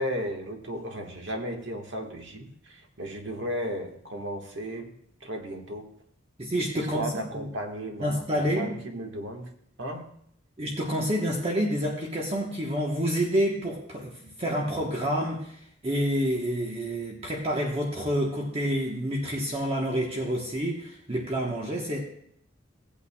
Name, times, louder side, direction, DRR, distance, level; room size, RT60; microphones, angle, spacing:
voice 1, 0.0-4.9 5.2-5.9 6.7-9.5 9.8-10.1, equal, 65° right, 2 dB, 1.4 m, -35 dB
voice 2, 6.4-7.1 7.4-7.5 8.0-8.7 10.6-15.6 15.8-22.0, equal, 30° right, -2 dB, 1.1 m, -28 dB
16.5 x 8.5 x 2.3 m, 0.67 s
head